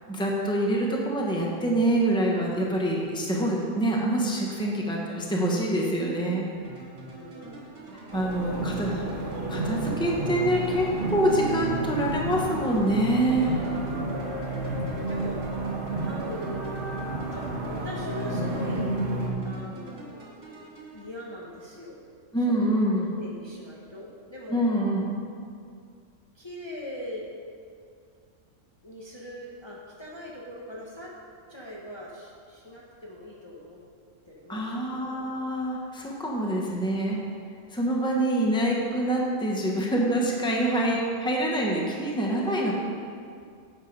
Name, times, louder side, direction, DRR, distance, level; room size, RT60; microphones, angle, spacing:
voice 1, 0.1-6.5 8.1-9.0 9.5-13.6 22.3-23.1 24.5-25.2 34.5-37.2 37.7-42.7, right 1 dB, 5° left, -2 dB, 1.0 m, -26 dB
sound 1, 6.6-21.7, right 2 dB, 65° right, 3.0 m, -46 dB
voice 2, 7.1-8.0 8.4-8.7 14.1-15.6 16.0-16.9 17.3-20.3 20.9-22.0 22.5-22.8 23.2-24.6 26.3-27.3 28.8-31.2 31.5-33.8 34.3-35.5 36.5-36.8, equal, 25° left, -4 dB, 1.0 m, -41 dB
sound 2, 8.1-19.3, right 2 dB, 45° right, 1.3 m, -31 dB
sound 3, 8.2-12.7 13.6-14.0 14.2-16.4 16.8-18.7, equal, 75° left, 3.2 m, -46 dB
8.8 x 6.7 x 5.2 m, 2.3 s
omnidirectional pair, 1.3 m